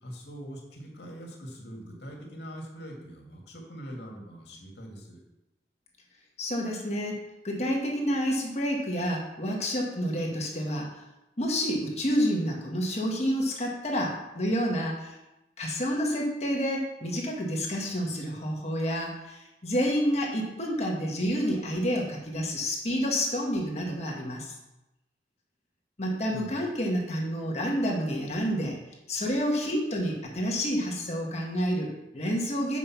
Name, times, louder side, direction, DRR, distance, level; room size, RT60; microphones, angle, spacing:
voice 1, 0.0-5.2 26.2-26.6, equal, 70° left, 0 dB, 2.1 m, -43 dB
voice 2, 6.4-11.0 11.4-15.1 15.6-24.5 26.0-28.8 29.1-32.8, equal, 35° left, -1 dB, 1.5 m, -29 dB
8.2 x 5.4 x 5.8 m, 0.94 s
head